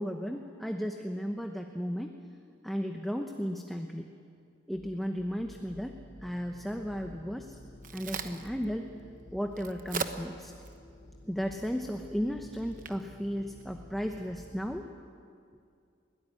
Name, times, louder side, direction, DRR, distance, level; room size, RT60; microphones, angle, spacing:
voice 1, 0.0-2.1 2.6-4.1 4.7-7.6 7.9-8.9 9.3-10.5 11.3-14.9, equal, ahead, 3 dB, 0.9 m, -35 dB
sound 1, 4.7-14.8, left 1 dB, 80° left, 3.8 m, -52 dB
Crack, 7.4-14.3, right 5 dB, 45° right, 1.0 m, -43 dB
22.0 x 18.0 x 9.8 m, 2.3 s
head